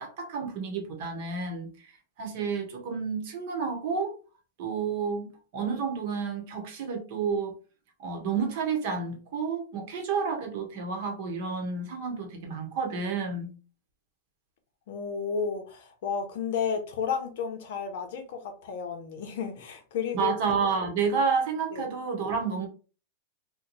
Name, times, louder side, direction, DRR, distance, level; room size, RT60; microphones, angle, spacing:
voice 1, 0.0-1.9 2.2-4.1 4.6-5.3 5.5-7.5 8.0-13.5 20.1-22.7, right 5 dB, 40° right, 3 dB, 0.9 m, -30 dB
voice 2, 14.9-20.3 21.7-21.9, left 6 dB, 55° left, 5 dB, 0.8 m, -32 dB
2.9 x 2.2 x 3.9 m, 0.36 s
supercardioid pair, 180°, 0 cm